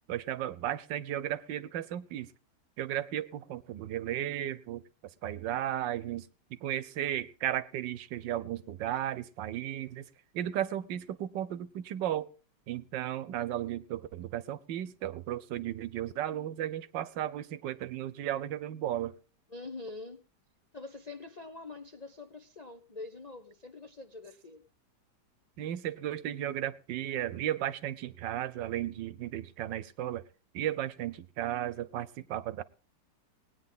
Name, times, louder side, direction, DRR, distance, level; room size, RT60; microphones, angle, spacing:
voice 1, 0.1-2.3 2.8-4.8 5.2-10.0 10.3-12.3 12.7-19.1 25.6-30.2 30.5-32.6, right 12 dB, 90° right, 1.4 m, -35 dB
voice 2, 19.5-20.2 20.7-24.6, left 3 dB, 50° left, 0.4 m, -45 dB
19.5 x 9.7 x 3.8 m
omnidirectional pair, 1.9 m